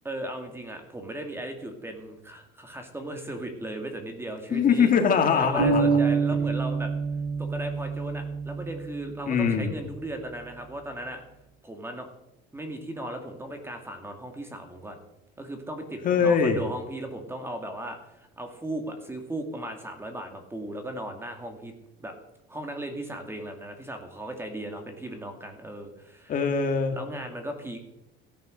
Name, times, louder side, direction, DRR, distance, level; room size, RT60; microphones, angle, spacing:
voice 1, 0.0-4.9 5.3-6.9 7.4-11.2 11.6-12.1 12.5-15.0 15.4-21.7 22.0-22.1 22.5-26.3 26.9-27.8, right 1 dB, 10° right, 5 dB, 2.1 m, -37 dB
voice 2, 4.5-5.8 9.3-9.7 16.0-16.6 26.3-27.0, left 6 dB, 40° left, 5 dB, 2.3 m, -22 dB
sound 1, 5.6-9.3, right 4 dB, 40° right, 6.1 m, -26 dB
16.0 x 10.0 x 6.5 m, 0.88 s
cardioid pair, 135°, 21 cm